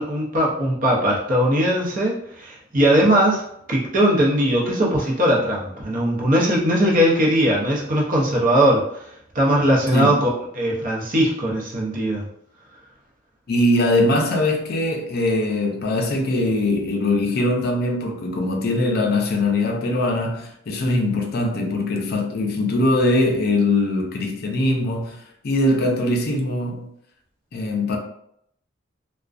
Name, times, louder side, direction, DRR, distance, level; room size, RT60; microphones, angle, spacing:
voice 1, 0.0-3.4 3.7-9.0 9.3-10.3 10.5-12.3, equal, 45° right, 0.6 m, -19 dB
voice 2, 13.5-25.2 25.4-26.9 27.5-28.0, left 1 dB, 55° left, 0.5 m, -21 dB
2.4 x 2.1 x 2.4 m
head